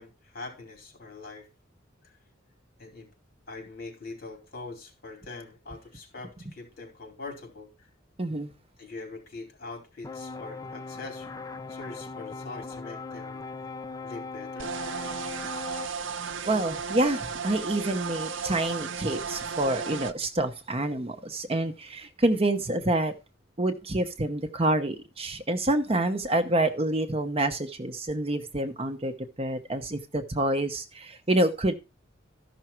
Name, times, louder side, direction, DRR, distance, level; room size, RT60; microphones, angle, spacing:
voice 1, 0.0-1.5 2.0-2.1 2.8-3.1 3.5-7.7 8.8-11.3 11.7-13.4 14.0-14.7, left 3 dB, 50° left, 2 dB, 4.4 m, -43 dB
voice 2, 8.2-8.5 16.4-23.1 23.6-31.7, right 1 dB, 30° right, 7 dB, 0.9 m, -27 dB
sound 1, 10.0-15.9, left 4 dB, 20° left, 0.5 m, -39 dB
sound 2, 14.6-20.1, right 5 dB, 65° right, 0.6 m, -34 dB
13.5 x 6.0 x 4.4 m, 0.28 s
head